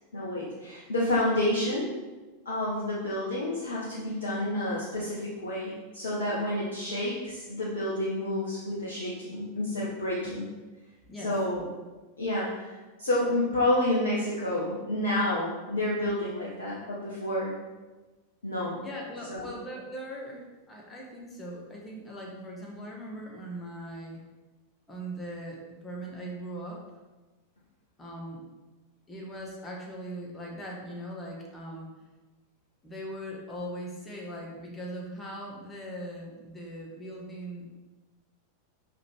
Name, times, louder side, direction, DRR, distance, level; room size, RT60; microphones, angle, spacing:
voice 1, 0.1-1.9 2.4-10.5 11.2-11.6 12.2-17.5 18.4-18.8 19.3-19.5, left 1 dB, 70° left, -7 dB, 1.4 m, -29 dB
voice 2, 18.8-24.2 24.9-26.8 28.0-28.4 29.1-31.9 32.8-37.7, right 1 dB, 15° left, -3 dB, 1.6 m, -40 dB
5.7 x 5.0 x 4.8 m, 1.2 s
figure-of-eight pair, 90°, 0 cm